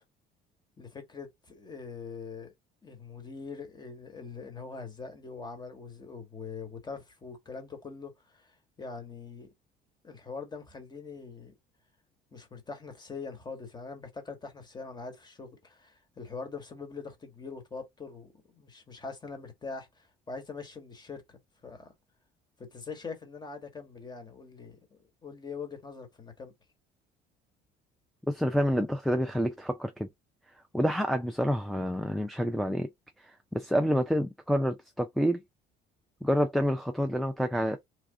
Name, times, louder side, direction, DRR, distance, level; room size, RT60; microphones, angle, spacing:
voice 1, 0.8-2.5 2.8-8.5 8.8-9.5 10.0-11.5 12.3-21.9 22.6-26.5, left 4 dB, 25° left, 1.5 m, -43 dB
voice 2, 28.3-30.1 30.7-32.9 33.2-35.4 36.2-37.8, equal, ahead, 0.5 m, -28 dB
3.4 x 2.4 x 3.6 m
cardioid pair, 95°, 18 cm